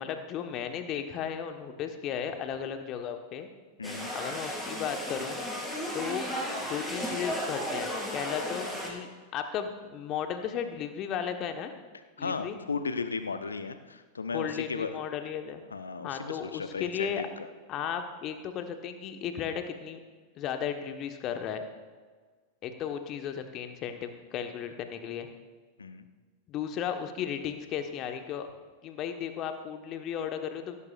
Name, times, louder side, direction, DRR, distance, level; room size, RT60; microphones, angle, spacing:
voice 1, 0.0-3.5 4.1-5.5 5.9-6.3 6.7-11.7 12.2-12.6 14.3-15.6 16.0-17.2 17.7-20.0 20.4-21.6 22.6-25.3 26.5-28.5 28.8-30.8, left 8 dB, 35° left, 7 dB, 1.2 m, -35 dB
voice 2, 3.8-4.1 12.2-14.9 15.7-17.5 25.8-26.0, left 4 dB, 75° left, 10 dB, 0.8 m, -35 dB
sound 1, 3.8-8.9, equal, 5° left, 4.2 m, -34 dB
17.0 x 15.5 x 2.5 m, 1.5 s
figure-of-eight pair, 90°, 0 cm